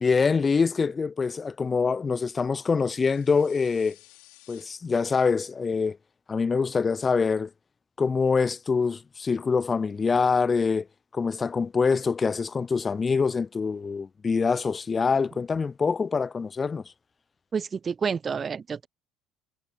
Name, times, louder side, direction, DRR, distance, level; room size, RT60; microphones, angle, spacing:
voice 1, 0.0-4.0 4.5-6.0 6.3-7.5 8.0-10.9 11.1-16.8, left 5 dB, 30° left, 0.5 m, -25 dB
sound 1, 2.5-4.6, left 28 dB, 65° left, 4.4 m, -56 dB
voice 2, 17.5-18.9, right 6 dB, 35° right, 0.8 m, -29 dB
figure-of-eight pair, 60°, 0 cm